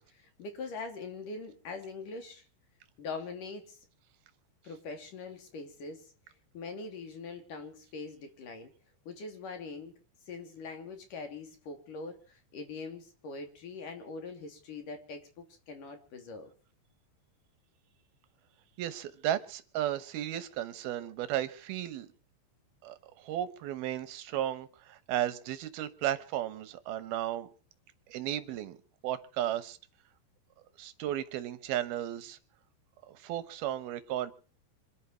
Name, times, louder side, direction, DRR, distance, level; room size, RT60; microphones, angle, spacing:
voice 1, 0.0-2.4 3.0-3.8 4.6-6.1 6.5-8.7 9.1-9.9 10.3-16.5, left 4 dB, 50° left, 6 dB, 4.1 m, -42 dB
voice 2, 18.8-22.1 22.8-27.5 28.1-28.8 29.0-29.8 30.8-32.4 33.1-34.3, right 12 dB, 70° right, 13 dB, 2.5 m, -34 dB
26.5 x 11.5 x 4.5 m, 0.39 s
omnidirectional pair, 5.3 m